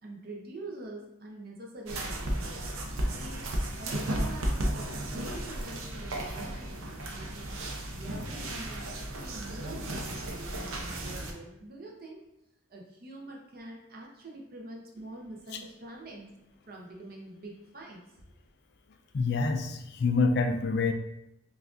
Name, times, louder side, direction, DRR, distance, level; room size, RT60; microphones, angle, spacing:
voice 1, 0.0-2.6 3.1-3.5 3.8-7.6 7.9-8.8 9.2-12.2 12.7-16.3 16.6-18.3, right 2 dB, 45° right, -1 dB, 0.7 m, -45 dB
sound 1, 1.9-11.3, right 1 dB, 85° right, 0.6 m, -34 dB
voice 2, 19.1-20.9, left 4 dB, 50° left, 5 dB, 0.3 m, -26 dB
5.7 x 2.4 x 2.5 m, 0.88 s
head